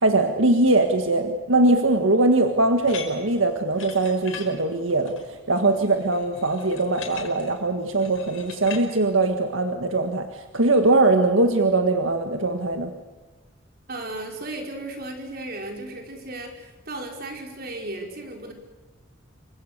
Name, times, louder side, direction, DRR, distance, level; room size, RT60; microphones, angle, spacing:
voice 1, 0.0-12.9, right 2 dB, 85° right, 6 dB, 1.7 m, -21 dB
sound 1, 2.8-8.8, left 6 dB, 85° left, 5.3 m, -41 dB
voice 2, 13.9-18.5, right 2 dB, 50° right, 2 dB, 5.1 m, -35 dB
28.0 x 24.5 x 6.8 m, 1.3 s
head